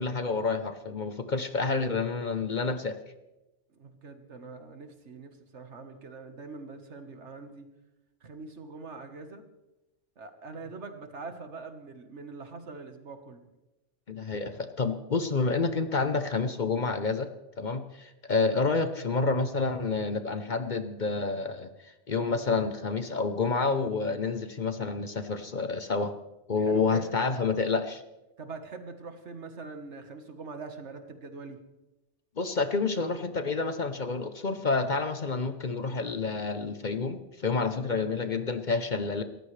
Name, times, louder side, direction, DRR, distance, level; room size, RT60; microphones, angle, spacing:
voice 1, 0.0-3.0 14.1-17.3 17.6-26.1 26.5-28.0 32.4-39.2, left 4 dB, 45° left, 9 dB, 0.9 m, -29 dB
voice 2, 3.8-7.7 8.2-9.4 10.2-13.4 26.6-27.1 28.4-31.6, right 4 dB, 70° right, 7 dB, 1.7 m, -43 dB
28.0 x 14.0 x 3.3 m, 1.0 s
omnidirectional pair, 1.2 m